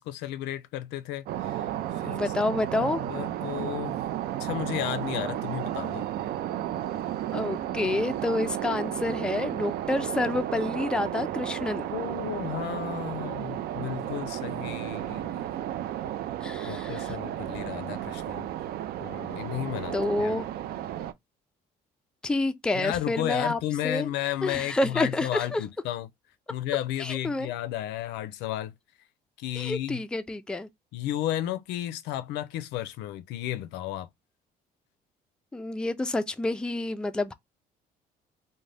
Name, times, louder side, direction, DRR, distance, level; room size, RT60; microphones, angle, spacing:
voice 1, 0.0-1.6 1.9-2.2 2.8-4.0 4.4-6.1 11.9-15.5 16.6-18.5 19.0-20.4 22.7-26.1 26.5-28.7 29.4-30.0 30.9-34.1, left 13 dB, 90° left, 0.4 m, -33 dB
sound 1, 1.2-21.1, right 12 dB, 65° right, 0.4 m, -33 dB
voice 2, 2.1-3.0 7.3-11.9 16.4-17.1 19.9-20.5 22.2-23.6 23.8-24.1 24.4-25.6 27.0-27.5 29.6-30.7 35.5-37.3, left 2 dB, 5° left, 0.3 m, -28 dB
2.5 x 2.1 x 3.2 m
cardioid pair, 110°, 17 cm